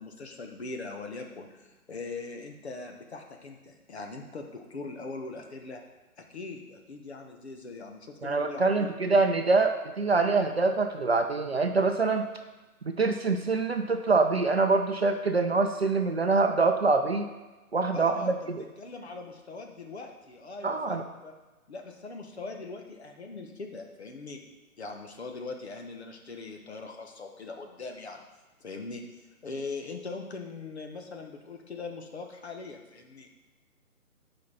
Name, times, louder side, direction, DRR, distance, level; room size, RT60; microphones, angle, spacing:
voice 1, 0.0-5.8 6.2-8.9 17.9-18.4 18.8-21.3 21.7-24.4 24.8-28.2 28.6-33.3, left 3 dB, 45° left, 3 dB, 1.1 m, -41 dB
voice 2, 8.2-12.3 12.8-17.3 17.7-18.6 20.6-21.0, right 3 dB, 45° right, 6 dB, 0.6 m, -25 dB
8.1 x 5.3 x 4.2 m, 1.2 s
figure-of-eight pair, 145°, 45 cm